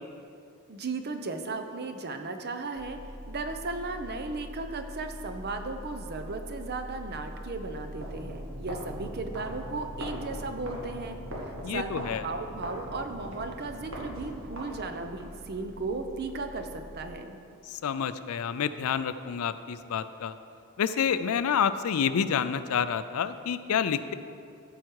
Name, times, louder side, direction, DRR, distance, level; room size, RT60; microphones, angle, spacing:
voice 1, 0.7-3.0 3.3-11.3 11.7-17.4, right 3 dB, 50° right, 7 dB, 0.7 m, -36 dB
sound 1, 2.8-17.1, equal, 5° left, 1.7 m, -44 dB
sound 2, 7.9-15.3, equal, 65° right, 1.6 m, -41 dB
voice 2, 11.6-12.2 17.7-20.3 20.8-24.1, left 7 dB, 75° left, 13 dB, 0.4 m, -28 dB
13.5 x 4.8 x 4.7 m, 2.5 s
head